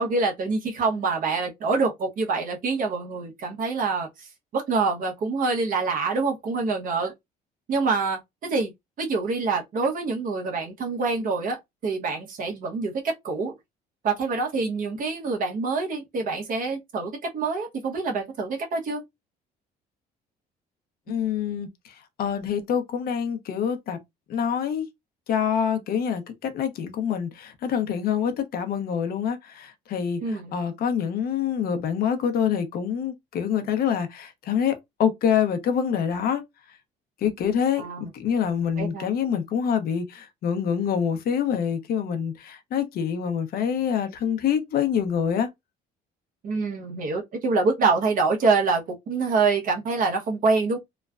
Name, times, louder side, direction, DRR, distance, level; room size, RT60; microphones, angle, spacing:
voice 1, 0.0-7.1 7.7-8.7 9.0-13.5 14.0-19.0 21.1-21.2 30.2-30.5 37.8-38.1 38.8-39.1 46.4-50.8, right 4 dB, 55° right, 1.0 m, -26 dB
voice 2, 21.1-24.0 24.3-24.9 25.3-36.4 37.2-45.5, left 8 dB, 65° left, 0.7 m, -26 dB
3.1 x 2.1 x 2.4 m
cardioid pair, 110°, 17 cm